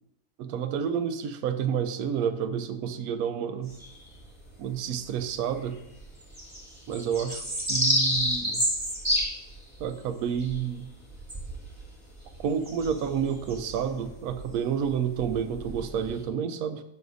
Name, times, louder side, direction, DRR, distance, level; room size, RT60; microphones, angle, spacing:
voice 1, 0.4-3.8 4.6-5.8 6.9-8.6 9.8-10.9 12.4-16.8, right 7 dB, 85° right, 9 dB, 1.1 m, -30 dB
sound 1, 3.7-4.8 5.2-5.3 5.5-16.2, equal, 10° right, 2.1 m, -31 dB
11.0 x 5.9 x 2.6 m, 0.84 s
omnidirectional pair, 1.5 m